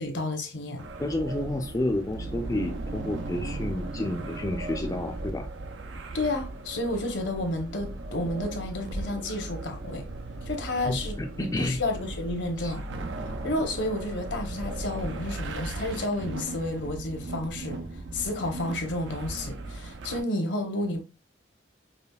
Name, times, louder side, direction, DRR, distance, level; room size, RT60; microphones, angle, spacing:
voice 1, 0.0-0.8 6.1-10.1 10.4-12.8 13.4-21.0, left 1 dB, 70° left, 0.9 m, -31 dB
sound 1, 0.8-20.2, right 2 dB, 80° right, 0.6 m, -37 dB
voice 2, 1.0-5.5 10.9-11.8 12.6-12.7, left 1 dB, 20° left, 0.4 m, -30 dB
5.1 x 2.4 x 2.3 m
head